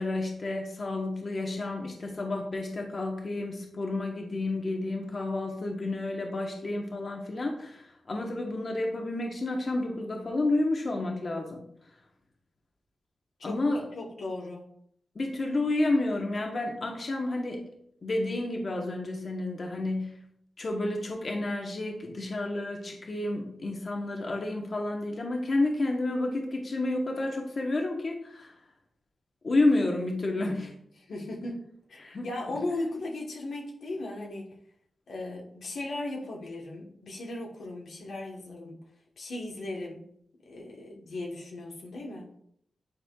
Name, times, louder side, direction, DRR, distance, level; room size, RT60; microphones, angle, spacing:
voice 1, 0.0-11.6 13.4-13.9 15.1-17.6 18.0-20.1 20.6-28.5 29.4-30.7 32.0-32.6, left 2 dB, 50° left, 1 dB, 1.1 m, -30 dB
voice 2, 14.0-14.6 31.1-34.6 35.1-38.8 39.2-40.0 40.4-42.3, left 2 dB, 80° left, -2 dB, 1.3 m, -37 dB
9.7 x 4.2 x 2.4 m, 0.70 s
cardioid pair, 65°, 0 cm